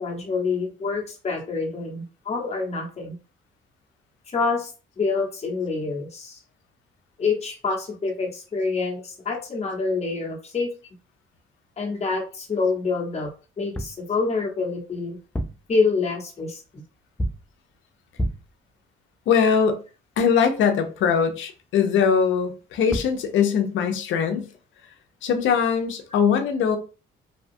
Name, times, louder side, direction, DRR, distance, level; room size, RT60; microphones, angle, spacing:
voice 1, 0.0-3.1 4.3-4.7 5.0-6.4 7.2-10.7 11.8-13.3 13.6-15.2 15.7-16.8, left 4 dB, 35° left, 0.9 m, -26 dB
sound 1, 13.6-14.1 15.2-15.7 17.2-17.6 18.2-18.6 22.6-22.7 22.9-23.2, equal, 10° left, 0.3 m, -29 dB
voice 2, 19.3-19.8 20.2-24.5 25.2-26.8, left 6 dB, 75° left, 0.6 m, -21 dB
2.7 x 2.2 x 2.6 m
cardioid pair, 90°, 20 cm